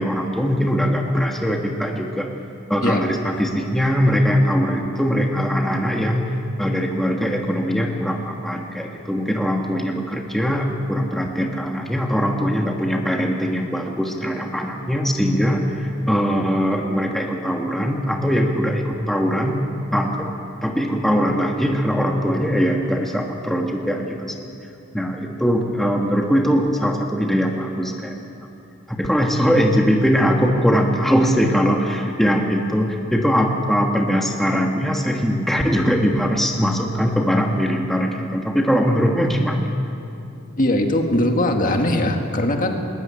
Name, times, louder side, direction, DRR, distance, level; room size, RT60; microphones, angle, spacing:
voice 1, 0.0-2.3 2.7-6.3 6.6-19.6 19.9-20.3 20.6-24.3 24.9-28.1 28.9-39.7, equal, ahead, 1 dB, 1.4 m, -21 dB
voice 2, 40.6-42.8, left 1 dB, 40° left, 4 dB, 1.8 m, -20 dB
20.5 x 20.5 x 9.0 m, 2.7 s
head